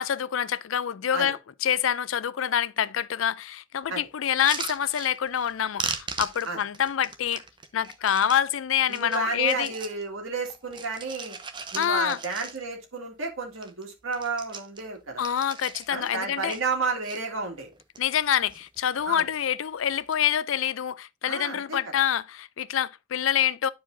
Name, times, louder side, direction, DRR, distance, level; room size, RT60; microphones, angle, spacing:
voice 1, 0.0-7.4 7.7-9.7 11.7-12.2 15.2-16.6 18.0-23.7, left 9 dB, 80° left, 0.4 m, -26 dB
sound 1, 4.3-5.5 5.8-8.4 8.8-10.0 10.4-12.9 13.2-13.3 13.5-13.8 14.1-16.1 16.5-17.2 17.7-18.2 18.5-19.0 19.9-20.2, right 5 dB, 25° right, 0.7 m, -38 dB
voice 2, 8.9-11.4 11.7-15.2 15.9-17.7 19.1-19.2 21.3-21.8, right 4 dB, 85° right, 2.1 m, -31 dB
11.0 x 4.8 x 2.6 m
head